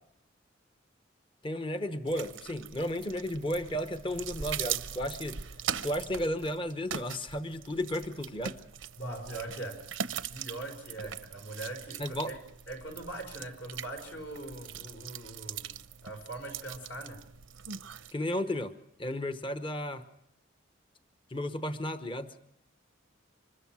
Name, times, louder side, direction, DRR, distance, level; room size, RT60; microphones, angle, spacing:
voice 1, 1.4-5.4 5.8-8.6 12.0-12.3 18.1-18.7 19.0-20.0 21.3-22.4, equal, 25° left, 1.0 m, -33 dB
sound 1, 2.1-18.1, right 8 dB, 90° right, 0.8 m, -41 dB
voice 2, 9.0-9.9 10.3-12.4 12.7-15.7 16.0-17.3, right 2 dB, 65° left, 4.9 m, -41 dB
25.0 x 21.5 x 6.1 m
head